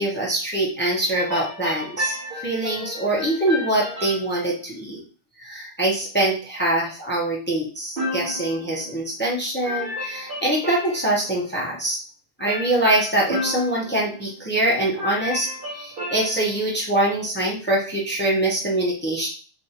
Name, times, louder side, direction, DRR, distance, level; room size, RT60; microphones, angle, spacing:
voice 1, 0.0-5.0 5.4-12.0 12.4-19.3, right 1 dB, 10° left, -4 dB, 0.9 m, -24 dB
sound 1, 1.1-4.3 8.0-9.3 9.6-11.3 12.5-14.7 15.0-16.6, left 1 dB, 65° right, 1.6 m, -32 dB
3.3 x 2.6 x 2.9 m, 0.38 s
omnidirectional pair, 1.0 m